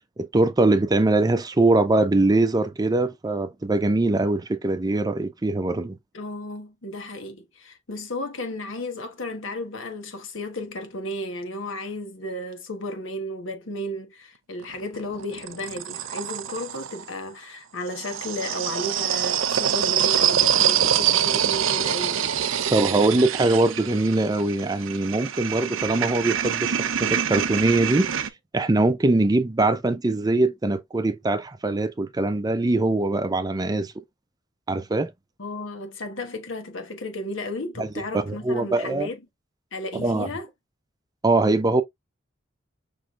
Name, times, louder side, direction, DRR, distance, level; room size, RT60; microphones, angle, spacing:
voice 1, 0.2-6.0 22.7-28.3 28.5-33.9 34.7-35.1 37.8-37.9 38.1-39.1 40.0-40.3 41.2-41.8, right 2 dB, 20° right, 0.5 m, -22 dB
voice 2, 6.1-22.2 35.4-39.2 39.7-40.5, left 1 dB, 70° left, 1.2 m, -33 dB
sound 1, 14.6-17.0 17.9-28.3, right 9 dB, 85° right, 0.6 m, -25 dB
5.8 x 3.1 x 2.4 m
head